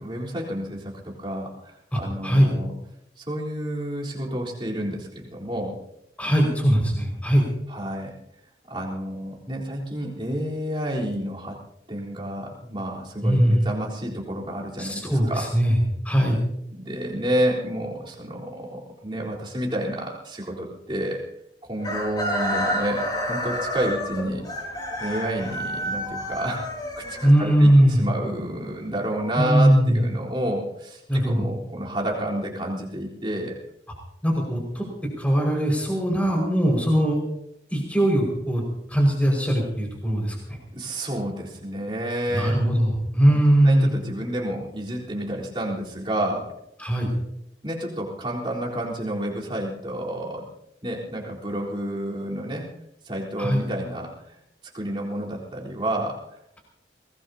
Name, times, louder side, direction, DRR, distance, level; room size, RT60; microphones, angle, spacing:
voice 1, 0.0-2.7 3.2-5.8 7.7-8.1 8.6-11.6 11.9-15.5 16.7-21.3 21.7-24.5 25.0-26.6 27.0-33.6 40.7-42.7 43.6-46.5 47.6-50.5 50.8-52.7 53.1-54.3 54.7-56.2, right 1 dB, 30° right, -4 dB, 3.9 m, -30 dB
voice 2, 1.9-2.5 6.2-7.5 13.2-13.6 14.8-15.8 16.1-16.4 27.2-28.0 29.4-30.0 31.1-31.4 34.2-34.8 35.2-37.2 37.7-38.6 38.9-40.3 42.3-43.9 46.8-47.1 53.4-53.6, equal, 10° left, -1 dB, 5.3 m, -20 dB
Chicken rooster, 21.8-27.8, equal, 25° left, 6.2 m, -29 dB
23.0 x 19.5 x 2.9 m, 0.79 s
head